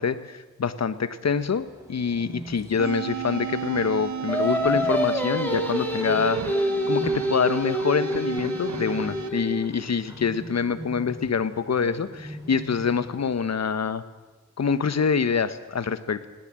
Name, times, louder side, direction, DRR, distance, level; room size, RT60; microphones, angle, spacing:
voice 1, 0.0-14.0 14.6-16.3, left 6 dB, 60° left, 13 dB, 1.3 m, -26 dB
Bird, 1.3-13.4, right 1 dB, 10° right, 5.5 m, -43 dB
sound 1, 2.8-9.3, right 7 dB, 65° right, 1.2 m, -34 dB
Singing, 4.3-9.7, equal, 5° left, 4.2 m, -27 dB
20.0 x 17.5 x 7.7 m, 1.2 s
cardioid pair, 45°, 30 cm